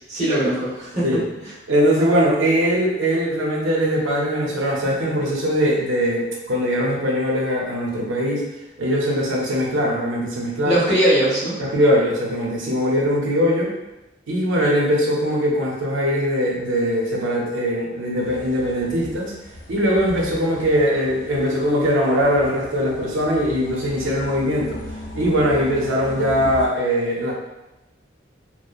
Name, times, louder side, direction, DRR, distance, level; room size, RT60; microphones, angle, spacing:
voice 1, 0.1-1.2 10.6-11.6, right 1 dB, 35° right, -9 dB, 1.0 m, -20 dB
voice 2, 1.7-8.5 8.8-10.8 11.6-13.7 14.3-19.3 19.7-24.8 25.1-27.3, equal, 85° right, -2 dB, 0.6 m, -21 dB
sound 1, 18.2-26.7, left 1 dB, 90° left, 0.6 m, -38 dB
2.8 x 2.0 x 2.4 m, 0.99 s
head